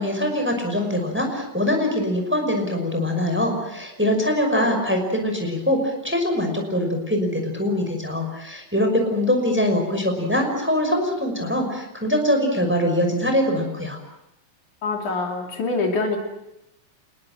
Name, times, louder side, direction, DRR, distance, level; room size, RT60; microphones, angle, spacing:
voice 1, 0.0-14.0, left 1 dB, 5° right, 4 dB, 5.5 m, -23 dB
voice 2, 14.8-16.2, left 3 dB, 65° left, 2 dB, 4.3 m, -25 dB
28.0 x 20.5 x 7.7 m, 0.85 s
omnidirectional pair, 3.9 m